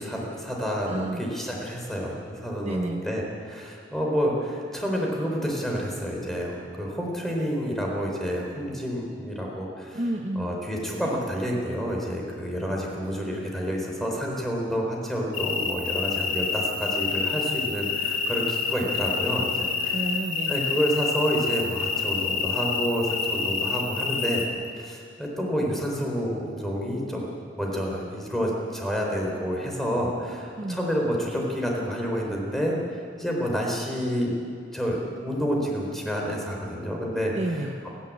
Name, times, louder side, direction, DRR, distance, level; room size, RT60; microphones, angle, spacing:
voice 1, 0.0-10.0 10.4-20.0 20.5-24.4 24.8-27.3 27.5-32.8 33.2-34.3 34.7-37.3, equal, ahead, -1 dB, 4.1 m, -29 dB
voice 2, 0.9-1.2 2.6-3.0 9.9-10.6 19.9-20.7 30.6-30.8 37.3-37.8, right 1 dB, 35° right, 2 dB, 1.0 m, -30 dB
sound 1, 15.3-24.5, left 5 dB, 90° left, 2.9 m, -28 dB
28.5 x 11.0 x 8.6 m, 2.2 s
head